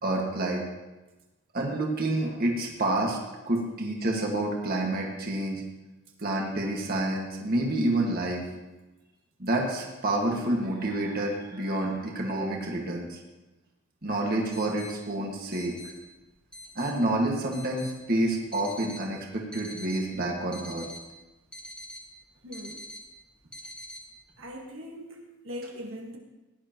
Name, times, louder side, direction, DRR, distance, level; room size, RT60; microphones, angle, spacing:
voice 1, 0.0-0.6 1.5-3.2 3.4-5.6 6.2-8.5 9.4-13.2 14.0-15.8 16.7-20.9, right 1 dB, 45° right, -1 dB, 1.7 m, -28 dB
sound 1, 14.0-24.4, equal, 5° left, 1.7 m, -46 dB
voice 2, 22.4-22.8 24.4-25.2 25.4-26.2, equal, 65° right, 0 dB, 1.7 m, -40 dB
17.5 x 11.0 x 3.0 m, 1.1 s
head